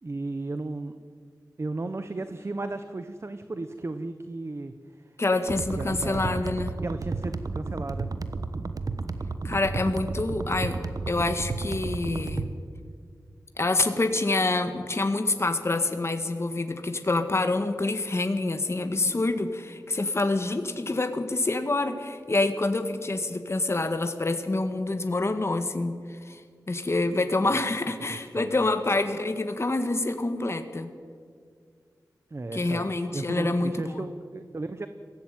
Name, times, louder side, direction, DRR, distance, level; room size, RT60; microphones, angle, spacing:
voice 1, 0.0-1.0 1.6-5.2 5.8-6.4 6.8-8.1 27.4-27.7 28.1-28.7 32.3-34.9, right 2 dB, 40° right, 10 dB, 1.0 m, -35 dB
voice 2, 5.2-6.7 9.4-10.8 11.1-12.5 13.6-26.4 26.7-30.9 32.5-34.1, left 2 dB, 40° left, 7 dB, 1.7 m, -27 dB
sound 1, 5.5-12.5, right 3 dB, 65° right, 1.2 m, -32 dB
22.5 x 15.5 x 9.3 m, 2.1 s
wide cardioid pair, 75°, 7 cm